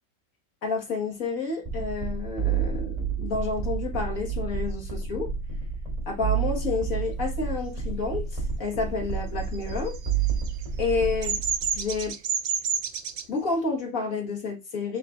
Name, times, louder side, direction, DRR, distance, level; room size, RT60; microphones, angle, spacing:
voice 1, 0.6-5.3 6.1-9.9 10.8-11.4 11.7-12.2 13.3-15.0, left 4 dB, 45° left, 2.1 m, -30 dB
sound 1, 1.6-12.1, right 6 dB, 15° right, 3.6 m, -30 dB
Bird vocalization bird call bird song, 9.5-13.2, right 6 dB, 55° right, 0.8 m, -29 dB
7.5 x 6.6 x 2.6 m
omnidirectional pair, 2.1 m